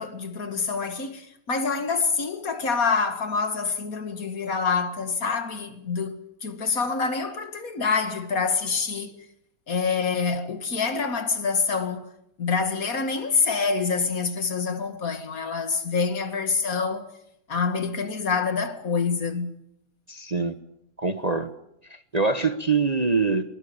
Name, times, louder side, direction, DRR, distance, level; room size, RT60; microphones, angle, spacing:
voice 1, 0.0-9.2 9.7-12.1 12.4-17.1 17.5-19.6, left 5 dB, 60° left, 2.4 m, -26 dB
voice 2, 20.1-20.5 21.0-21.5 21.9-23.4, right 4 dB, 30° right, 1.0 m, -24 dB
23.5 x 22.0 x 8.8 m
omnidirectional pair, 1.7 m